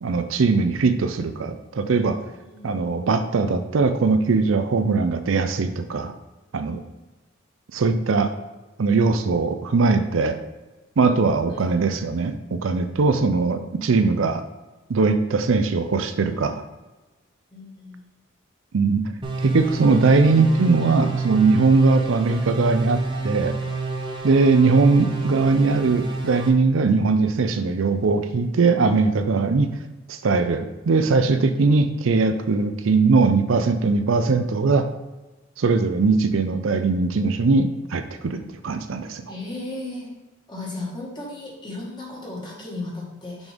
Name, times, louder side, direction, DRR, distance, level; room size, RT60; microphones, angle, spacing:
voice 1, 0.0-2.2 2.6-6.1 6.5-6.8 7.7-8.3 8.8-10.4 11.0-14.4 14.9-16.6 18.7-19.1 19.4-23.6 24.2-29.7 30.1-34.9 35.6-39.2, right 4 dB, 75° right, 9 dB, 0.5 m, -20 dB
voice 2, 2.4-2.9 6.7-6.9 11.5-11.7 17.5-18.0 38.4-38.5 39.3-40.1 40.5-43.5, left 2 dB, 20° left, -4 dB, 1.8 m, -35 dB
sound 1, 19.2-26.5, right 2 dB, 25° right, 0.7 m, -28 dB
6.1 x 5.3 x 3.5 m, 1.1 s
head